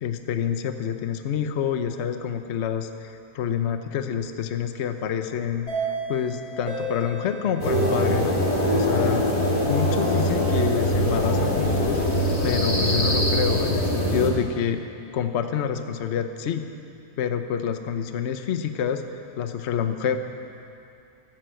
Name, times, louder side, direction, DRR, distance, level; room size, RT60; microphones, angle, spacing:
voice 1, 0.0-8.4 8.7-9.3 9.7-12.0 12.4-14.8 15.1-16.7 17.2-19.0 19.3-20.2, left 8 dB, 55° left, 8 dB, 0.9 m, -27 dB
sound 1, 5.7-10.3, equal, 75° left, 5.5 m, -30 dB
sound 2, 7.6-14.3, equal, 30° left, 2.7 m, -23 dB
15.0 x 12.5 x 7.7 m, 2.6 s
omnidirectional pair, 1.6 m